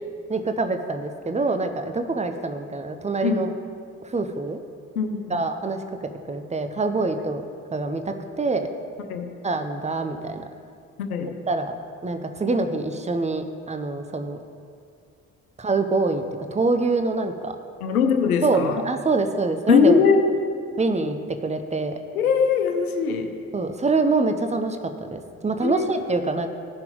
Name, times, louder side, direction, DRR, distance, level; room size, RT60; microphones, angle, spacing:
voice 1, 0.3-3.5 4.0-4.6 5.3-5.8 6.3-7.4 7.7-8.7 9.4-10.4 11.2-11.7 12.0-14.4 15.6-16.2 16.5-17.6 18.4-20.0 20.8-21.2 21.4-21.9 23.5-26.5, right 3 dB, 15° right, 7 dB, 0.8 m, -25 dB
voice 2, 4.9-5.4 9.1-9.3 11.0-11.3 17.8-18.8 19.7-20.3 22.1-23.3 25.6-26.2, left 6 dB, 80° left, 6 dB, 0.7 m, -21 dB
15.5 x 5.8 x 3.9 m, 2.3 s
figure-of-eight pair, 45°, 43 cm